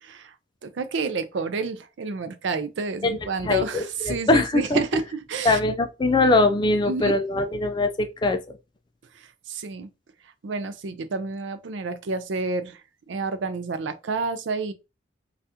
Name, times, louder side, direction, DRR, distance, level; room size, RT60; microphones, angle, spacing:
voice 1, 0.0-0.3 0.6-5.6 6.9-7.2 9.1-9.9 10.4-12.8 13.1-14.7, right 4 dB, 80° right, 0.5 m, -29 dB
voice 2, 3.4-4.8 5.4-8.6, left 2 dB, 25° left, 0.3 m, -22 dB
2.8 x 2.4 x 3.4 m
head